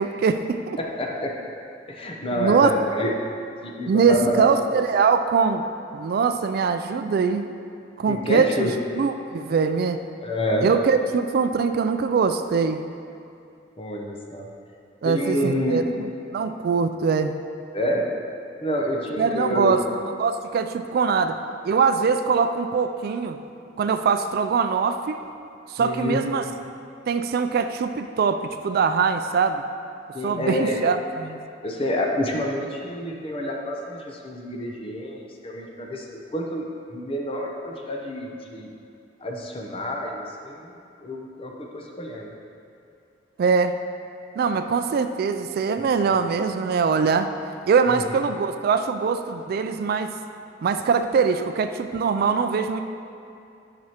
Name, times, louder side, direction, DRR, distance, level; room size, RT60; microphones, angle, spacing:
voice 1, 0.0-0.8 2.4-2.7 3.9-5.6 5.9-7.4 8.0-8.7 8.9-10.0 10.6-12.8 15.0-17.4 19.2-19.8 20.2-21.4 21.6-23.4 23.8-25.2 25.7-26.4 27.1-29.6 30.2-31.4 43.4-43.8 44.4-47.3 47.7-50.1 50.6-52.8, right 5 dB, 55° right, 8 dB, 0.3 m, -22 dB
voice 2, 0.8-1.4 1.9-3.3 3.6-4.5 8.1-8.8 10.2-10.7 13.8-14.5 15.0-15.8 17.7-18.1 18.6-19.8 25.8-26.5 30.1-30.9 31.6-38.7 39.2-40.7 41.0-42.3 47.9-48.2, left 1 dB, 30° left, 0 dB, 0.7 m, -28 dB
9.3 x 6.0 x 2.9 m, 2.6 s
head